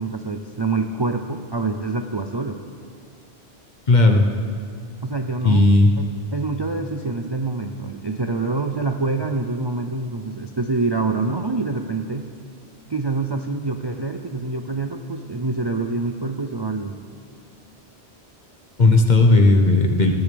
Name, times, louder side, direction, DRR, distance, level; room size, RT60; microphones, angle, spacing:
voice 1, 0.0-2.6 5.0-5.7 6.0-12.2 12.9-17.0, right 3 dB, 30° right, 5 dB, 0.5 m, -26 dB
voice 2, 3.9-4.3 5.4-5.9 18.8-20.1, left 2 dB, 45° left, 3 dB, 1.3 m, -14 dB
20.0 x 15.5 x 3.4 m, 2.3 s
omnidirectional pair, 1.1 m